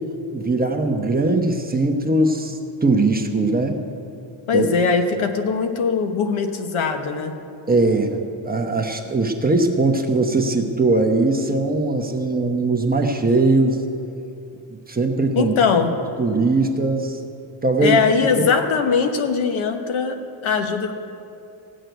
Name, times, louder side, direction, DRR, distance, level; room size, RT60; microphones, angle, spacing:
voice 1, 0.3-3.8 4.5-4.7 7.7-8.2 8.4-13.8 14.9-15.5 16.2-17.2 17.6-18.5, right 2 dB, 20° right, 3 dB, 1.0 m, -20 dB
voice 2, 4.5-7.4 15.3-16.0 17.8-20.9, left 5 dB, 75° left, 6 dB, 1.3 m, -21 dB
16.0 x 6.4 x 9.2 m, 2.6 s
cardioid pair, 130°, 49 cm